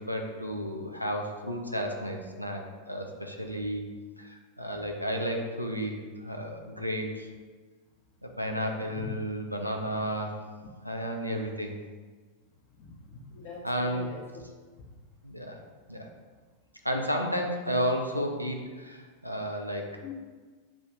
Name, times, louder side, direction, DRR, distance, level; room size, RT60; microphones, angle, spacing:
voice 1, 0.1-2.6 2.9-3.8 4.2-7.3 8.2-10.4 10.8-11.7 13.6-14.1 15.2-15.6 15.9-16.1 16.8-19.9, equal, 90° right, 2 dB, 0.4 m, -32 dB
voice 2, 12.8-14.4 20.0-20.1, left 3 dB, 40° left, -5 dB, 0.7 m, -43 dB
6.1 x 2.8 x 2.4 m, 1.4 s
figure-of-eight pair, 90°, 0 cm